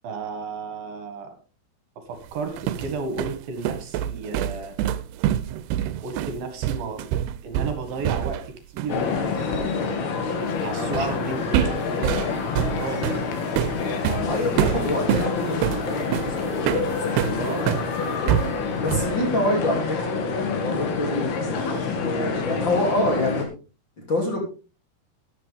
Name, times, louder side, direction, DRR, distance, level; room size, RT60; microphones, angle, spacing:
voice 1, 0.0-1.3 2.0-4.8 6.0-7.1 7.4-10.0 10.6-12.3 12.8-13.0 14.7-14.8 17.4-17.7, right 4 dB, 65° right, 7 dB, 3.4 m, -33 dB
sound 1, 2.3-8.5 8.8-9.0 10.9-11.2 11.5-17.9 18.3-19.2, right 11 dB, 85° right, 2.8 m, -26 dB
sound 2, 8.9-23.4, left 5 dB, 70° left, 3.9 m, -27 dB
voice 2, 10.7-11.2 12.9-13.1 14.2-17.7 18.8-23.5 24.1-24.4, left 1 dB, 30° left, 1 dB, 3.0 m, -27 dB
13.5 x 11.0 x 3.5 m, 0.34 s
omnidirectional pair, 4.7 m